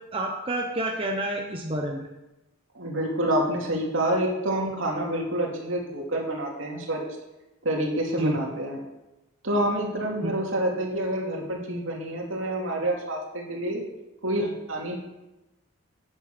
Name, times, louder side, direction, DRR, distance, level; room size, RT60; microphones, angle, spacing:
voice 1, 0.1-2.0 8.2-8.3 10.2-10.3, right 1 dB, 25° right, 0 dB, 1.1 m, -28 dB
voice 2, 2.7-7.0 7.6-8.8 9.4-13.8 14.2-15.0, right 1 dB, 60° right, -1 dB, 2.8 m, -27 dB
11.5 x 8.7 x 6.2 m, 0.98 s
head